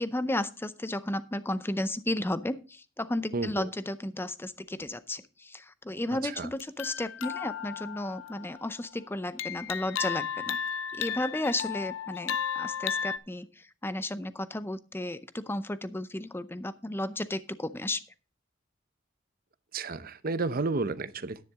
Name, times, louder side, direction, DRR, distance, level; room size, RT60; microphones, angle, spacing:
voice 1, 0.0-10.6 10.9-18.0, left 1 dB, 10° left, 14 dB, 0.6 m, -33 dB
voice 2, 3.3-3.7 6.2-6.5 19.7-21.4, right 3 dB, 50° right, 14 dB, 0.7 m, -31 dB
sound 1, 6.6-8.8 9.4-13.2, left 8 dB, 85° left, 0.6 m, -34 dB
10.5 x 9.9 x 3.6 m, 0.34 s
head